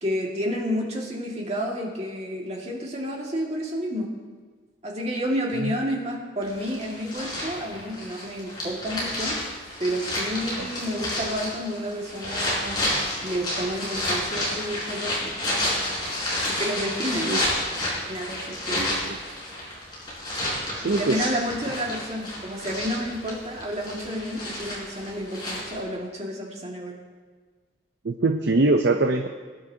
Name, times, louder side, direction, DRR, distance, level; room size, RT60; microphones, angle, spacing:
voice 1, 0.0-4.1 4.8-9.4 9.8-12.9 13.2-15.3 16.4-17.3 18.0-18.9 20.9-27.0, equal, 35° right, -1 dB, 2.0 m, -30 dB
sound 1, 6.4-25.8, left 1 dB, 25° left, 4.5 m, -30 dB
voice 2, 18.7-19.2 20.7-21.3 28.0-29.3, right 2 dB, 70° right, 5 dB, 0.6 m, -23 dB
21.0 x 10.5 x 2.8 m, 1.5 s
head